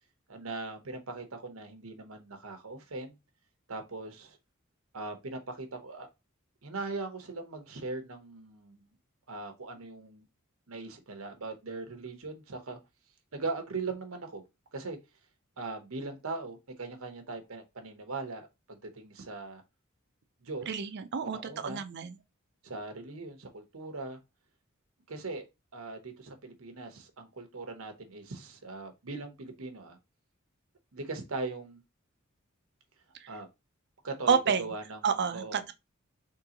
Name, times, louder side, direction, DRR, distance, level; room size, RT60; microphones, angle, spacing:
voice 1, 0.3-3.2 3.7-4.4 4.9-6.1 6.6-8.9 9.3-10.2 10.7-12.8 13.3-14.4 14.7-15.0 15.6-19.6 20.4-20.8 21.2-21.8 22.6-24.2 25.1-25.4 25.7-30.0 30.9-31.8 33.3-33.5 34.0-35.6, right 3 dB, 90° right, 1.0 m, -40 dB
voice 2, 20.7-22.2 33.2-33.3 34.3-34.7 35.0-35.7, right 6 dB, 55° right, 0.5 m, -29 dB
3.8 x 3.5 x 2.9 m
head